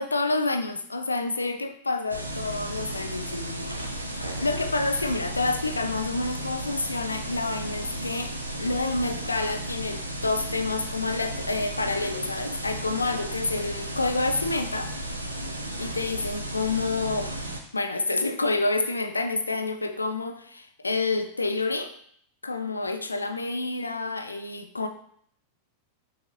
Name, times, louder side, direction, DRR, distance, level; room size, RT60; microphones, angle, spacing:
voice 1, 0.0-14.9 15.8-17.3 17.7-21.9 22.4-24.9, left 3 dB, 80° left, 7 dB, 0.4 m, -28 dB
sound 1, 2.1-17.6, right 1 dB, 85° right, 0.5 m, -34 dB
5.8 x 2.5 x 3.0 m, 0.66 s
figure-of-eight pair, 90°, 0 cm